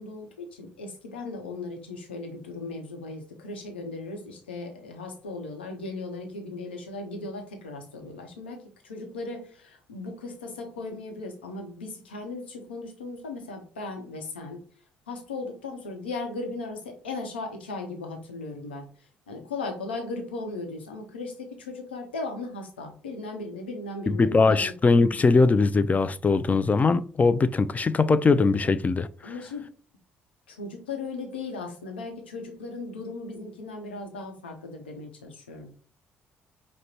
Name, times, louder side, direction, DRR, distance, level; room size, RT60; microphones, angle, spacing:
voice 1, 0.0-14.6 15.1-18.9 19.3-24.7 29.2-29.7 30.5-35.7, left 3 dB, 85° left, 0.8 m, -37 dB
voice 2, 24.1-29.1, left 4 dB, 25° left, 0.3 m, -21 dB
5.0 x 2.1 x 4.2 m
hypercardioid pair, 50°, 6 cm